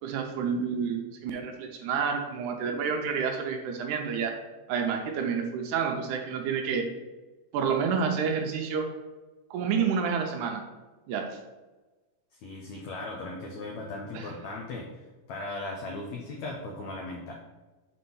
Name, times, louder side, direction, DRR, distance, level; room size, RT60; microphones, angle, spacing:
voice 1, 0.0-4.3 4.7-6.9 7.5-8.9 9.5-10.6 11.1-11.3 14.1-14.3, right 6 dB, 90° right, 3 dB, 1.7 m, -29 dB
voice 2, 12.4-17.3, left 2 dB, 80° left, 0 dB, 1.6 m, -38 dB
6.0 x 4.3 x 5.4 m, 1.2 s
omnidirectional pair, 4.3 m